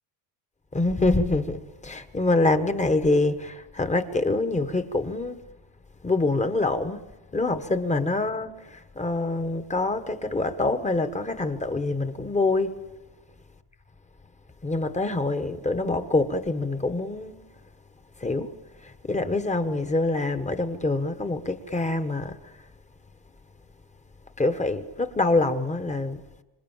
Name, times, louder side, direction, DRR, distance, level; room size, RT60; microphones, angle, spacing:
voice 1, 0.7-5.4 6.0-7.0 7.3-12.8 14.6-17.3 18.2-18.5 18.8-22.4 24.4-26.2, left 2 dB, 15° left, 1.4 m, -25 dB
26.5 x 26.0 x 7.4 m
cardioid pair, 140°, 47 cm